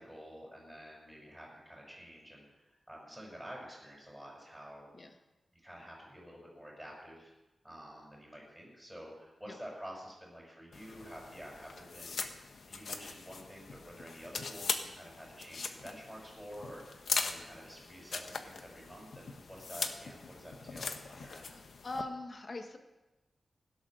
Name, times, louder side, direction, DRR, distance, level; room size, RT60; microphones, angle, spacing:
voice 1, 0.0-4.9 5.5-7.3 7.6-21.5, equal, ahead, -3 dB, 6.4 m, -49 dB
sound 1, 10.7-22.0, left 4 dB, 65° left, 1.1 m, -41 dB
voice 2, 21.4-22.8, left 2 dB, 40° left, 5 dB, 1.5 m, -42 dB
16.5 x 12.0 x 6.2 m, 1.0 s
wide cardioid pair, 140°, 0 cm